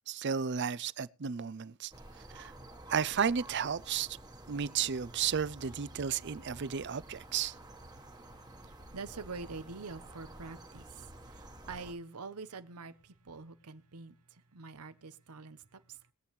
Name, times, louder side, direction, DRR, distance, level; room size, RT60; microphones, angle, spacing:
voice 1, 0.1-1.9 2.3-2.5 2.9-4.1 4.5-7.5, right 7 dB, 50° right, 0.5 m, -33 dB
sound 1, 1.9-11.9, right 1 dB, 20° right, 1.3 m, -51 dB
voice 2, 8.0-16.1, right 4 dB, 85° right, 1.0 m, -46 dB
21.5 x 8.4 x 3.2 m
head